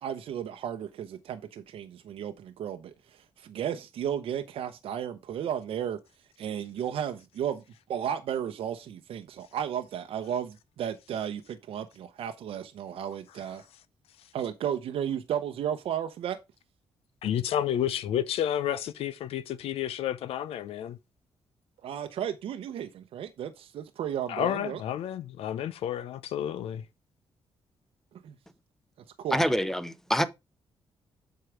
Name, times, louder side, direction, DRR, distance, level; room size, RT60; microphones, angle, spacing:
voice 1, 0.0-6.0 6.4-7.6 7.9-13.7 14.3-16.4 21.8-24.8 28.2-28.3 29.2-29.4, right 9 dB, 75° right, 0.8 m, -34 dB
voice 2, 17.2-21.0 24.3-26.8, left 10 dB, 85° left, 0.6 m, -30 dB
voice 3, 29.3-30.2, equal, 5° left, 0.8 m, -26 dB
7.8 x 4.7 x 4.9 m
cardioid pair, 125°, 10 cm